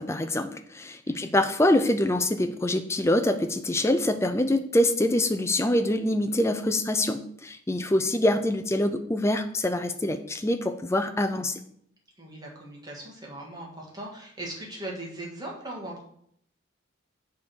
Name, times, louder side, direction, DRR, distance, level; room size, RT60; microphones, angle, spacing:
voice 1, 0.0-11.5, left 1 dB, 15° left, 8 dB, 0.4 m, -25 dB
voice 2, 12.2-16.0, right 1 dB, 20° right, -3 dB, 1.6 m, -39 dB
7.4 x 3.6 x 6.2 m, 0.68 s
head